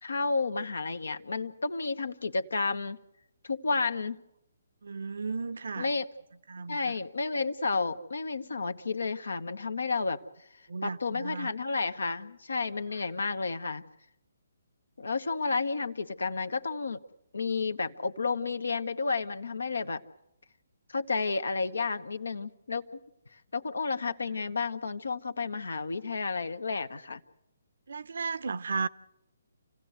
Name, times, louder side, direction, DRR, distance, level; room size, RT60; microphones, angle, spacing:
voice 1, 0.0-3.0 3.4-4.2 5.8-6.1 6.7-10.2 10.8-13.9 15.0-17.0 17.3-20.0 20.9-22.9 23.3-27.2, left 4 dB, 75° left, 1.3 m, -31 dB
voice 2, 4.8-5.9 6.5-6.9 10.7-11.5 27.9-28.9, right 4 dB, 65° right, 0.8 m, -34 dB
28.0 x 16.0 x 8.0 m
figure-of-eight pair, 140°, 0 cm